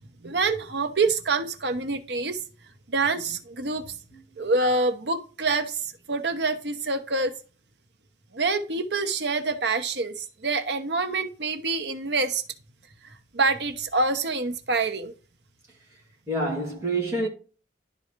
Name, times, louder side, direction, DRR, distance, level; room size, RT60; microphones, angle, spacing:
voice 1, 0.2-2.4 2.9-4.0 4.4-7.3 8.3-12.4 13.3-15.1, right 3 dB, 70° right, 0.9 m, -26 dB
voice 2, 16.3-17.3, right 2 dB, 15° right, 2.2 m, -27 dB
11.5 x 3.9 x 3.0 m
head